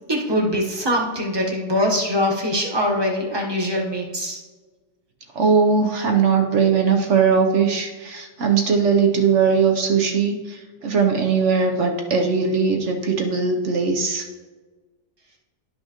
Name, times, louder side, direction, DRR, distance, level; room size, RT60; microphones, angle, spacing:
voice 1, 0.1-4.4, equal, 20° right, -2 dB, 1.0 m, -23 dB
voice 2, 5.3-14.2, right 5 dB, 55° right, 3 dB, 0.9 m, -19 dB
11.5 x 5.6 x 2.9 m, 1.3 s
omnidirectional pair, 1.7 m